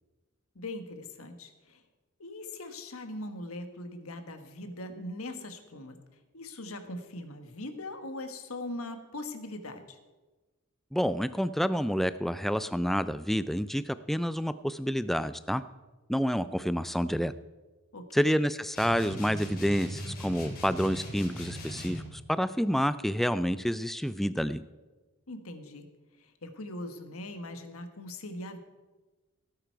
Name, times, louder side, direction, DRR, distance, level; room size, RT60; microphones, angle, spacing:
voice 1, 0.5-1.8 2.2-6.0 6.3-10.0 17.9-18.2 25.3-25.9 26.2-28.6, left 1 dB, 90° left, 7 dB, 1.4 m, -41 dB
voice 2, 10.9-15.6 16.1-17.3 18.1-24.6, equal, ahead, 14 dB, 0.3 m, -28 dB
sound 1, 18.8-22.1, equal, 45° left, 3.7 m, -39 dB
17.5 x 8.9 x 4.6 m, 1.2 s
head